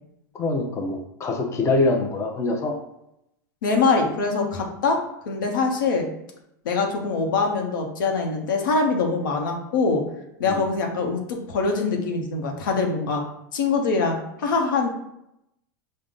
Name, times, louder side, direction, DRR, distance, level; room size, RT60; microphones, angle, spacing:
voice 1, 0.3-2.7 10.4-10.6, left 3 dB, 25° left, 1 dB, 0.8 m, -24 dB
voice 2, 3.6-5.0 5.3-6.1 6.6-10.0 10.4-13.2 13.5-14.9, left 4 dB, 75° left, 2 dB, 0.9 m, -23 dB
5.0 x 2.3 x 3.7 m, 0.80 s
hypercardioid pair, 110°, 11 cm